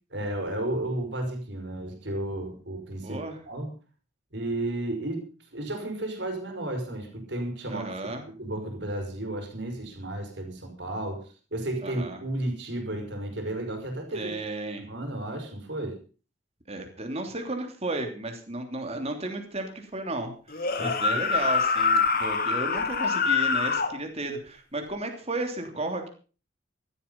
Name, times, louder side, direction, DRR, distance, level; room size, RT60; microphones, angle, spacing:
voice 1, 0.1-3.2 3.5-3.7 4.3-8.1 8.4-11.2 11.5-14.3 14.8-16.0 20.8-21.2, right 1 dB, 65° right, 5 dB, 5.2 m, -33 dB
voice 2, 3.0-3.4 7.7-8.2 11.8-12.2 14.1-14.9 16.7-26.1, right 2 dB, 35° right, 5 dB, 3.1 m, -34 dB
sound 1, 20.5-23.9, left 5 dB, 50° left, 2.0 m, -25 dB
15.5 x 13.0 x 5.5 m, 0.38 s
head